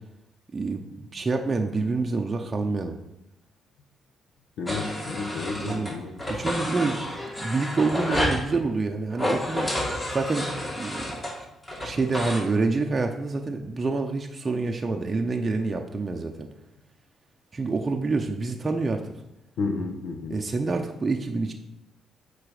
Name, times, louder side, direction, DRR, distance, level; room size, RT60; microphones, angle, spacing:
voice 1, 0.5-0.8 1.1-3.0 5.6-5.9 6.3-7.1 7.4-9.7 10.1-11.1 11.8-16.5 17.5-19.0 20.3-21.5, right 3 dB, 30° right, 3 dB, 0.6 m, -27 dB
voice 2, 4.6-6.2 19.6-20.4, left 4 dB, 85° left, 4 dB, 0.9 m, -31 dB
sound 1, 4.7-5.9 6.2-8.4 9.1-12.4, left 1 dB, 25° left, 2.4 m, -30 dB
7.4 x 4.1 x 4.9 m, 0.88 s
cardioid pair, 90°, 0 cm